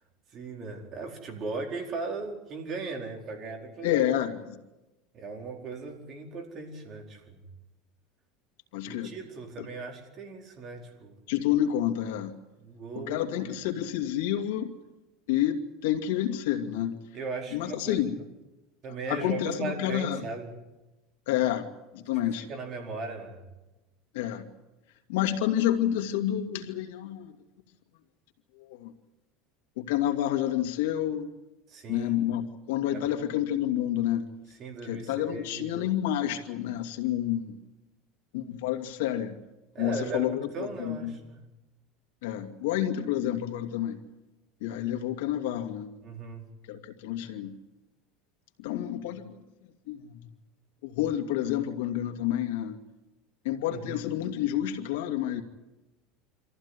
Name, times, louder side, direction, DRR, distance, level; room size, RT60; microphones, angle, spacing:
voice 1, 0.3-4.1 5.1-7.4 8.8-11.1 12.6-13.8 17.1-18.0 18.8-20.5 22.4-23.4 31.7-32.1 32.9-33.0 34.6-35.7 39.7-41.4 46.0-46.4 53.7-54.1, right 3 dB, 35° right, 2 dB, 4.7 m, -38 dB
voice 2, 3.8-4.6 8.7-9.1 11.3-12.3 13.0-14.7 15.3-17.0 17.5-18.2 19.1-20.2 21.3-22.5 24.1-24.5 25.1-27.3 28.6-28.9 29.8-31.3 31.9-34.3 34.8-37.6 38.3-39.3 39.8-41.1 42.2-44.0 44.6-45.9 46.7-47.5 48.6-49.3 49.9-50.2 50.8-52.8 53.4-55.4, left 11 dB, 85° left, 6 dB, 2.4 m, -29 dB
25.5 x 15.0 x 9.9 m, 1.0 s
supercardioid pair, 150°, 0 cm